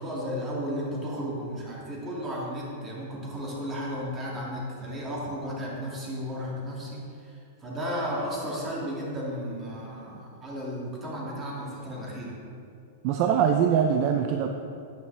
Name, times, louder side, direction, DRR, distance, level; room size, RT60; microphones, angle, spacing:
voice 1, 0.0-12.4, equal, 15° right, -4 dB, 2.1 m, -34 dB
voice 2, 13.0-14.5, right 8 dB, 40° right, 4 dB, 0.5 m, -23 dB
10.5 x 9.3 x 3.4 m, 2.5 s
supercardioid pair, 160°, 0 cm